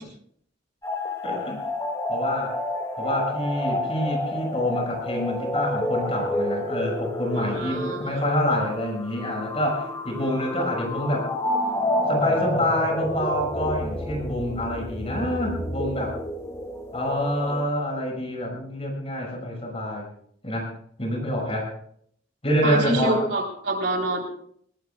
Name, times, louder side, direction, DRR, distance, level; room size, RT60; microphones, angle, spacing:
sound 1, 0.8-17.6, left 1 dB, 15° left, 2.4 m, -29 dB
voice 1, 1.2-1.7 2.1-2.5 3.0-11.3 12.1-16.2 16.9-20.1 20.4-20.7 21.0-21.7 22.4-23.2, left 1 dB, 35° left, 1 dB, 6.4 m, -27 dB
voice 2, 7.3-8.2 22.6-24.2, right 2 dB, 70° right, 1 dB, 3.8 m, -27 dB
21.5 x 20.0 x 2.4 m, 0.63 s
head